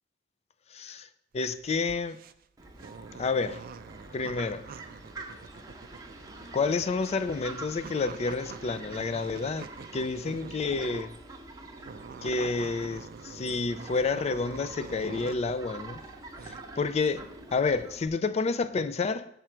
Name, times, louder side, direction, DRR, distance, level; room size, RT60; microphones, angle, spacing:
voice 1, 0.7-1.1 1.3-2.2 3.2-3.6 4.1-4.7 6.5-11.2 12.2-16.0 16.4-17.2 17.5-19.3, left 4 dB, 35° left, 0.3 m, -29 dB
sound 1, 1.3-11.2 11.7-15.6 16.0-16.6, right 5 dB, 45° right, 0.3 m, -46 dB
Fowl, 2.6-18.1, right 2 dB, 20° right, 0.8 m, -46 dB
6.7 x 4.4 x 6.0 m
head